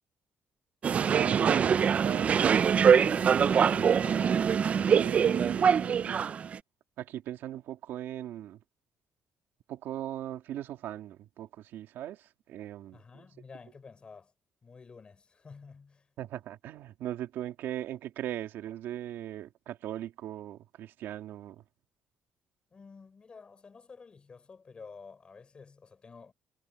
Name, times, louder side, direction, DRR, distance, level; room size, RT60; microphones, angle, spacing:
sound 1, 0.8-6.6, right 7 dB, 40° right, 0.3 m, -24 dB
voice 1, 1.0-2.4 4.9-6.3 7.0-8.6 9.7-13.0 16.2-21.6, right 12 dB, 90° right, 2.3 m, -39 dB
voice 2, 3.0-4.3 12.9-14.3 14.6-16.1 22.7-26.3, left 5 dB, 30° left, 4.7 m, -50 dB
cardioid pair, 150°, 4 cm